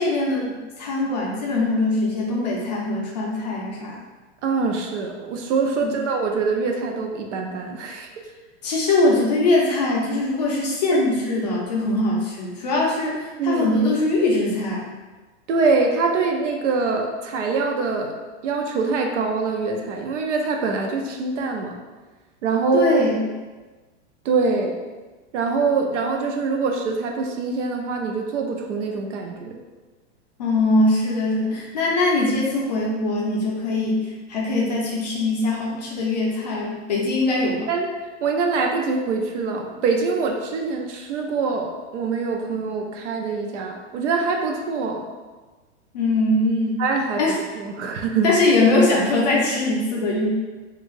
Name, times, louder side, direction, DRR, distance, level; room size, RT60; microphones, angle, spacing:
voice 1, 0.0-4.0 5.8-5.9 8.6-14.9 22.7-23.2 30.4-37.7 45.9-46.8 47.2-47.4 48.2-50.3, left 2 dB, 35° left, -3 dB, 0.4 m, -22 dB
voice 2, 4.4-8.1 10.9-11.0 13.4-13.6 15.5-18.2 18.4-21.8 22.4-23.0 24.2-24.8 25.3-29.6 37.7-37.9 38.2-45.0 46.8-48.3, right 4 dB, 75° right, 3 dB, 0.6 m, -24 dB
2.6 x 2.4 x 3.0 m, 1.3 s
supercardioid pair, 180°, 36 cm